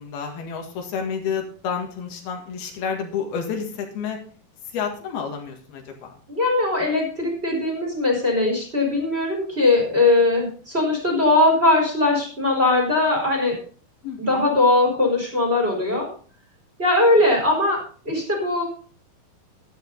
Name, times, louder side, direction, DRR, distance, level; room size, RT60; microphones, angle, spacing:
voice 1, 0.0-4.2 4.7-6.1 14.0-14.5, left 6 dB, 80° left, 2 dB, 3.8 m, -30 dB
voice 2, 6.3-13.6 14.2-16.1 16.8-18.6, left 2 dB, 15° right, -1 dB, 4.1 m, -20 dB
11.5 x 11.0 x 4.0 m, 0.43 s
omnidirectional pair, 4.4 m